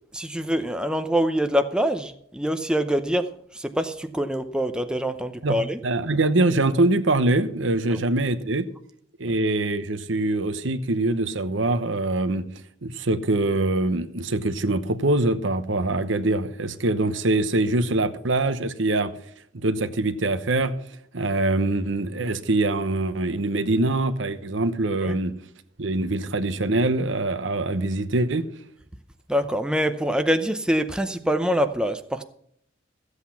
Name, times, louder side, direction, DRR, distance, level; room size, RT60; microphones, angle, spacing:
voice 1, 0.1-3.3 3.5-5.8 7.9-8.0 9.3-9.4 25.0-25.1 29.3-32.2, equal, 5° right, 0.6 m, -25 dB
voice 2, 5.4-8.7 9.2-12.5 12.8-19.1 19.5-20.7 21.1-25.3 25.8-28.5, right 2 dB, 70° right, 1.0 m, -23 dB
15.0 x 8.2 x 5.7 m
head